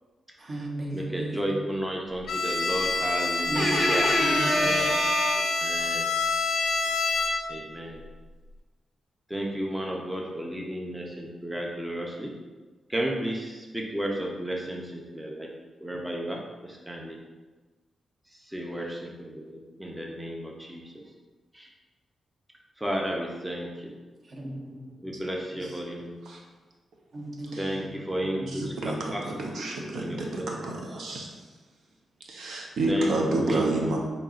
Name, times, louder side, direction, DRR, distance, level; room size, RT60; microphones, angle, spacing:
voice 1, 0.4-1.6 3.5-5.5 24.3-25.2 27.1-27.7 28.1-28.5, right 1 dB, 45° right, -2 dB, 0.8 m, -29 dB
voice 2, 0.9-5.0 5.4-6.1 7.5-8.0 9.3-12.3 12.9-15.5 15.8-17.2 18.3-20.9 21.5-21.7 22.8-23.9 25.0-26.1 27.6-29.6 29.9-30.7 32.9-34.0, right 1 dB, 10° right, 0 dB, 0.5 m, -33 dB
Bowed string instrument, 2.3-7.7, left 3 dB, 70° left, 0.4 m, -27 dB
voice 3, 28.5-31.3 32.3-34.0, right 2 dB, 80° right, -1 dB, 0.6 m, -29 dB
5.2 x 2.8 x 2.4 m, 1.3 s
wide cardioid pair, 115°, 0 cm